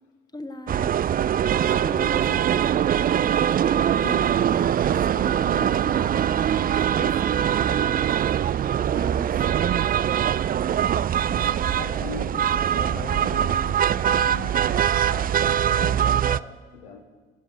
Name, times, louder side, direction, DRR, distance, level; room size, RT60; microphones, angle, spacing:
voice 1, 0.3-1.0 1.7-4.0 4.2-8.1 8.9-9.5, left 2 dB, 10° left, 1.2 m, -41 dB
sound 1, 0.7-16.4, right 9 dB, 30° right, 0.4 m, -22 dB
voice 2, 4.0-4.4 10.8-17.0, left 5 dB, 80° left, 1.6 m, -40 dB
17.0 x 8.0 x 7.8 m
figure-of-eight pair, 45°, 32 cm